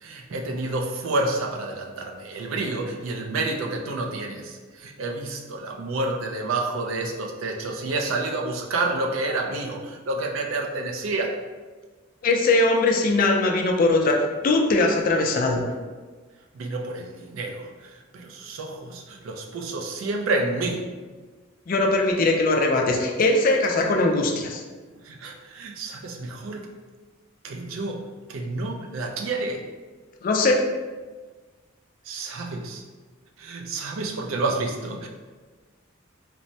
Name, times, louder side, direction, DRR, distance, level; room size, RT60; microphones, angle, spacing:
voice 1, 0.0-11.3 16.5-17.7 18.1-20.9 25.0-26.7 27.4-29.6 32.1-32.8 33.4-35.1, right 2 dB, 80° right, 2 dB, 0.4 m, -29 dB
voice 2, 12.2-14.2 14.4-15.6 21.7-24.6 30.2-30.6, left 2 dB, 45° left, 2 dB, 0.3 m, -20 dB
3.2 x 2.0 x 2.6 m, 1.4 s
head